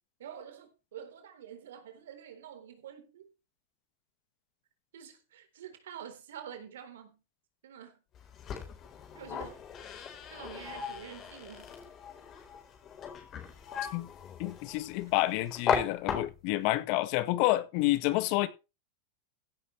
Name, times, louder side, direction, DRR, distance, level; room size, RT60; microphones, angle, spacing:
voice 1, 0.2-3.3 4.9-7.2 7.6-8.0 9.1-9.6 10.3-11.8, right 9 dB, 80° right, 4.0 m, -47 dB
sound 1, 8.1-16.7, left 7 dB, 35° left, 4.3 m, -37 dB
voice 2, 14.4-18.5, left 17 dB, 55° left, 1.6 m, -29 dB
15.5 x 11.0 x 3.3 m
hypercardioid pair, 105°, 0 cm